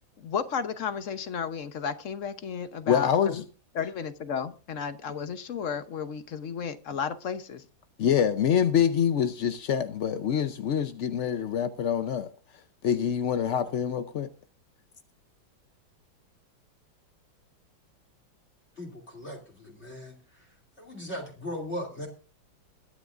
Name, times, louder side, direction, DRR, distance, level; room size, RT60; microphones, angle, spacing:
voice 1, 0.2-3.4 3.7-7.6, left 7 dB, 50° left, 1.0 m, -33 dB
voice 2, 2.9-3.4 8.0-12.3 12.8-14.3, left 8 dB, 70° left, 0.6 m, -25 dB
voice 3, 18.8-20.5 20.8-22.1, left 1 dB, 35° left, 2.9 m, -38 dB
21.5 x 9.6 x 2.5 m
omnidirectional pair, 2.1 m